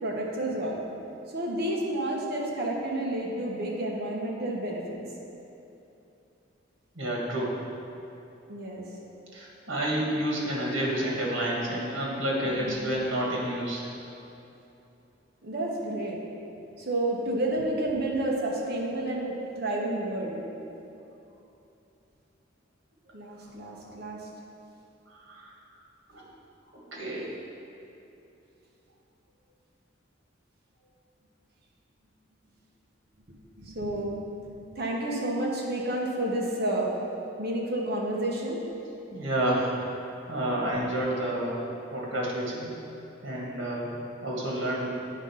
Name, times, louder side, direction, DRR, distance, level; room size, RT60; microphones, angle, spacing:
voice 1, 0.0-0.8 1.3-5.0 8.5-8.9 12.4-12.8 15.4-16.2 16.8-20.4 23.1-24.3 33.3-37.0 37.4-38.6, right 1 dB, 55° right, -2 dB, 1.1 m, -30 dB
voice 2, 6.9-7.5 9.3-13.8 25.1-25.6 26.1-26.2 26.9-27.3 39.1-41.6 41.9-42.7 43.2-43.9 44.2-44.9, right 1 dB, 85° right, -4 dB, 1.5 m, -29 dB
8.6 x 3.8 x 5.5 m, 2.9 s
head